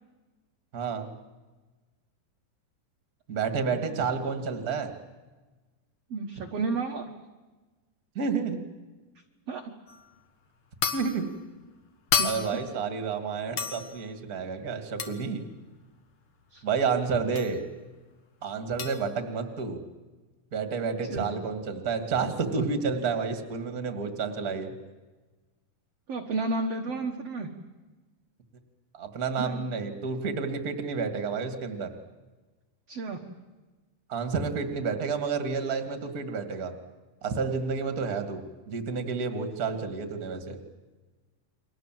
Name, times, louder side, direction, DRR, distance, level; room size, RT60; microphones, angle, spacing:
voice 1, 0.7-1.1 3.3-4.9 8.1-8.6 10.9-11.3 12.2-15.4 16.6-17.7 18.4-19.8 20.5-24.7 28.9-31.9 34.1-36.7 37.2-40.6, right 5 dB, 30° right, 7 dB, 1.9 m, -30 dB
voice 2, 6.1-7.1 9.5-9.7 12.2-12.3 16.5-16.6 21.1-21.3 26.1-27.5 29.4-29.6 32.9-33.2, right 3 dB, 60° right, 2 dB, 1.7 m, -31 dB
sound 1, 9.9-10.1 10.8-11.3 12.1-12.7 13.6-14.0 15.0-15.3 17.4-17.5 18.8-19.0, left 6 dB, 55° left, 1.5 m, -30 dB
30.0 x 23.5 x 7.7 m, 1.2 s
omnidirectional pair, 4.9 m